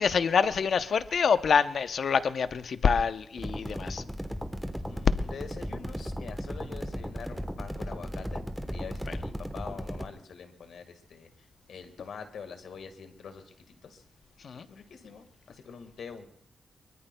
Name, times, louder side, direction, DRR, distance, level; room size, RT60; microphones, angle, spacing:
voice 1, 0.0-4.0 9.1-9.2 14.4-14.7, left 6 dB, 60° left, 12 dB, 0.6 m, -26 dB
sound 1, 3.4-10.1, equal, ahead, 1.0 m, -36 dB
voice 2, 4.9-8.4 8.7-13.5 13.8-14.0 14.5-16.3, left 6 dB, 90° left, 7 dB, 1.6 m, -45 dB
24.0 x 22.5 x 2.2 m, 0.68 s
wide cardioid pair, 125°, 0 cm